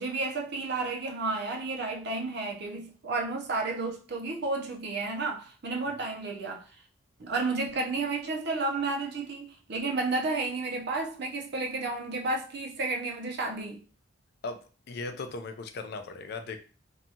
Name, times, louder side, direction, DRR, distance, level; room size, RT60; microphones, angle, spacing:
voice 1, 0.0-6.7 7.2-13.8, right 3 dB, 60° right, 0.5 m, -32 dB
voice 2, 14.9-16.6, left 3 dB, 55° left, 0.4 m, -37 dB
2.7 x 2.3 x 2.7 m
head